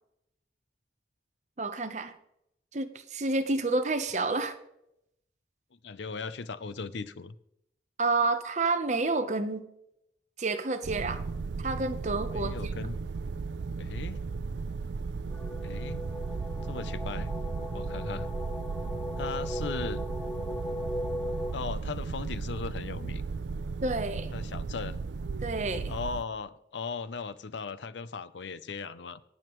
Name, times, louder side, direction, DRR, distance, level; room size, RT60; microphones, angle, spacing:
voice 1, 1.6-2.2 2.7-4.6 8.0-9.7 10.4-11.2 11.6-12.7 23.8-24.3 25.4-25.9, right 3 dB, 40° right, 0.8 m, -29 dB
voice 2, 5.8-7.4 12.3-13.0 13.8-14.2 15.6-16.0 16.7-17.3 17.7-18.3 19.2-20.0 21.5-23.2 24.3-25.0 25.9-29.2, left 4 dB, 80° left, 0.6 m, -37 dB
sound 1, 10.8-26.2, right 4 dB, 80° right, 0.5 m, -35 dB
sound 2, 15.3-21.5, left 1 dB, 5° left, 0.5 m, -38 dB
19.5 x 8.0 x 3.1 m
head